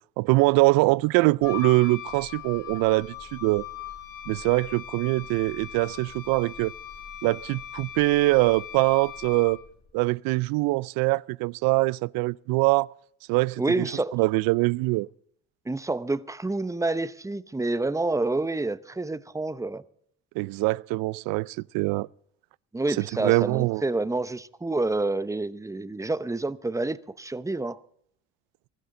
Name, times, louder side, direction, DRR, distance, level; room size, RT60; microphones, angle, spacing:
voice 1, 0.2-3.7 4.3-6.7 7.2-9.6 9.9-12.9 13.3-13.9 14.1-15.1 20.4-22.1 23.0-23.8, right 22 dB, 80° right, 0.5 m, -23 dB
Wind instrument woodwind instrument, 1.4-9.7, left 10 dB, 70° left, 5.8 m, -40 dB
voice 2, 13.6-14.1 15.7-19.8 22.7-27.8, right 2 dB, 10° right, 0.8 m, -28 dB
23.0 x 13.0 x 3.8 m
supercardioid pair, 85°, 35 cm